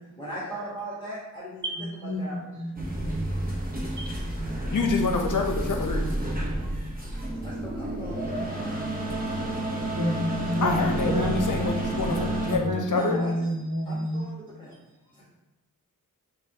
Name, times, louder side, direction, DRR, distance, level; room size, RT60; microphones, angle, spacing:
voice 1, 0.2-1.6 2.2-2.5 6.1-6.3 7.4-8.6 9.5-9.7 12.9-13.4 13.8-14.7 15.1-15.3, right 1 dB, 15° left, -8 dB, 1.2 m, -38 dB
voice 2, 1.6-2.7 3.0-3.3 3.9-4.8 8.3-8.8 9.9-11.7 12.0-14.3, left 1 dB, 55° right, -3 dB, 1.0 m, -30 dB
sound 1, 2.8-12.6, right 1 dB, 25° right, 0.9 m, -30 dB
voice 3, 4.7-6.1 10.6-13.2, left 4 dB, 60° left, 3 dB, 0.7 m, -27 dB
5.4 x 2.3 x 2.8 m, 1.0 s
wide cardioid pair, 50°, 34 cm